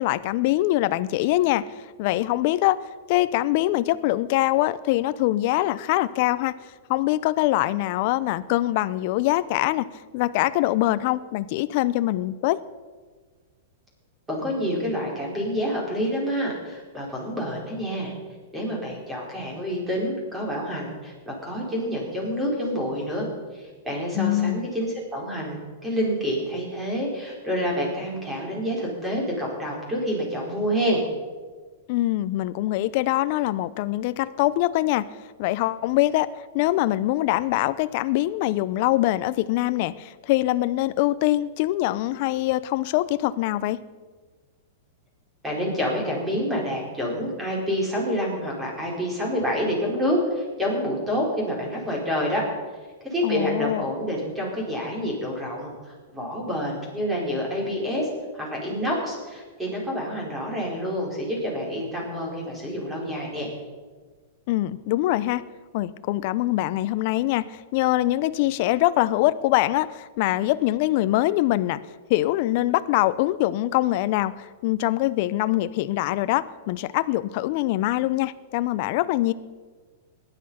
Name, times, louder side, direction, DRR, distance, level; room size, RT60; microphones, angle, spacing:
voice 1, 0.0-2.8 3.1-6.5 6.9-9.8 10.1-12.6 24.2-24.7 31.9-35.1 35.4-43.8 53.2-53.8 64.5-65.4 65.7-71.8 72.1-79.3, left 16 dB, 50° left, 15 dB, 0.6 m, -23 dB
voice 2, 14.3-18.1 18.5-23.3 23.5-31.0 45.4-52.5 53.1-63.5, equal, 10° right, -2 dB, 4.8 m, -28 dB
18.5 x 11.0 x 5.7 m, 1.4 s
supercardioid pair, 150°, 0 cm